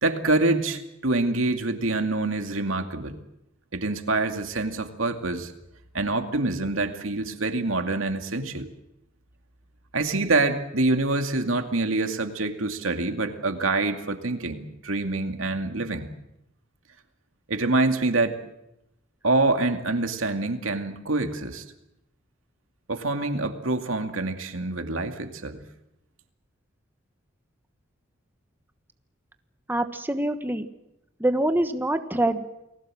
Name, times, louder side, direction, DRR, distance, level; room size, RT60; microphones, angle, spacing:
voice 1, 0.0-3.2 3.7-5.5 5.9-8.7 9.9-16.1 17.5-18.4 19.2-21.6 22.9-25.6, right 2 dB, 85° right, 6 dB, 2.3 m, -26 dB
voice 2, 29.7-30.7 31.2-32.5, right 1 dB, 10° right, 8 dB, 1.2 m, -25 dB
29.5 x 20.0 x 7.7 m, 0.87 s
head